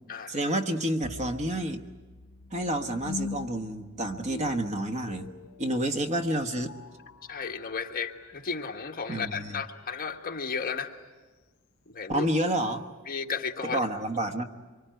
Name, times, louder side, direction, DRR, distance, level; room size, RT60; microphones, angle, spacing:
voice 1, 0.3-1.8 2.5-5.3 5.6-6.7 9.1-9.6 12.1-12.8 13.7-14.4, right 1 dB, 30° right, 5 dB, 1.3 m, -29 dB
sound 1, 1.0-10.1, left 3 dB, 90° left, 0.9 m, -44 dB
voice 2, 7.3-10.9 11.9-12.3 13.1-13.8, left 5 dB, 40° left, 3 dB, 1.5 m, -34 dB
25.5 x 24.0 x 9.2 m, 1.3 s
head